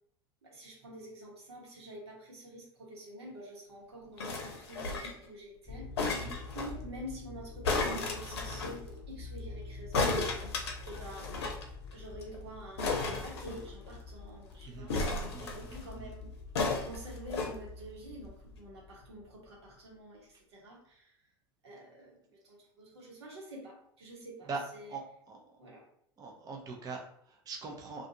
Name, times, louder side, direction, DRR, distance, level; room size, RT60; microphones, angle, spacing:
voice 1, 0.4-5.9 6.5-10.3 10.8-11.3 11.9-15.1 15.4-16.3 16.8-21.1 21.6-25.0 25.6-25.9, right 1 dB, 80° right, -2 dB, 1.0 m, -48 dB
sound 1, 4.2-5.3 6.0-6.7 7.6-8.7 9.9-11.6 11.9-12.0 12.2-12.4 12.8-14.0 14.9-15.8 16.5-17.5 18.2-18.3, left 3 dB, 80° left, 0.6 m, -33 dB
sound 2, 5.7-19.9, left 4 dB, 25° left, 0.4 m, -47 dB
voice 2, 24.9-25.6 26.2-28.1, right 4 dB, 30° right, 1 dB, 0.6 m, -42 dB
2.5 x 2.4 x 2.7 m, 0.66 s
hypercardioid pair, 85°, 14 cm